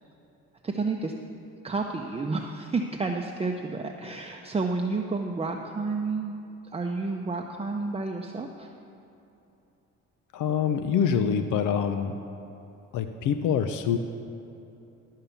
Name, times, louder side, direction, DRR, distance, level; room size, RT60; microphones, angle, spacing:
voice 1, 0.6-1.1 1.6-8.7, right 3 dB, 20° right, 2 dB, 0.6 m, -30 dB
voice 2, 10.3-12.2 12.9-14.0, left 7 dB, 80° left, 8 dB, 0.6 m, -25 dB
12.5 x 5.7 x 7.0 m, 2.9 s
cardioid pair, 90°, 30 cm